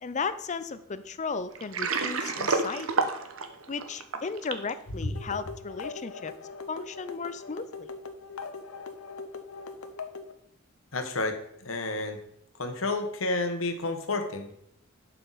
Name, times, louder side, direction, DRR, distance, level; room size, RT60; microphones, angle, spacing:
voice 1, 0.0-3.1 3.7-6.3 6.7-7.9, left 4 dB, 35° left, 13 dB, 0.5 m, -35 dB
Water, 1.5-4.7, right 4 dB, 85° right, 0.9 m, -29 dB
sound 1, 5.2-10.3, left 4 dB, 90° left, 0.8 m, -41 dB
voice 2, 10.9-12.2 12.6-14.5, left 2 dB, 70° left, 7 dB, 1.3 m, -30 dB
11.5 x 5.8 x 4.1 m, 0.73 s
head